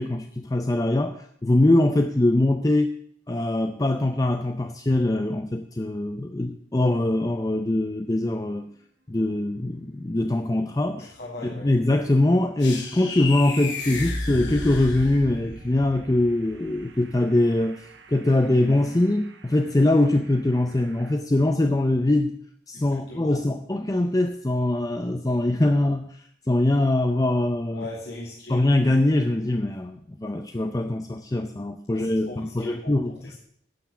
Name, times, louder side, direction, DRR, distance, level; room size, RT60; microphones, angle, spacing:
voice 1, 0.0-2.9 3.3-8.7 9.1-11.1 11.4-22.3 22.7-27.9 28.5-33.3, left 1 dB, 20° left, 7 dB, 0.5 m, -23 dB
sound 1, 9.5-9.6 10.0-10.1 12.0-12.1 12.4-21.1, right 1 dB, 85° right, 1.2 m, -42 dB
voice 2, 11.1-11.7 23.1-23.4 27.7-28.6 31.9-33.0 33.2-33.4, left 2 dB, 65° left, -4 dB, 2.1 m, -38 dB
sound 2, 12.6-15.5, left 3 dB, 85° left, 3.2 m, -33 dB
11.5 x 7.2 x 6.9 m, 0.65 s
head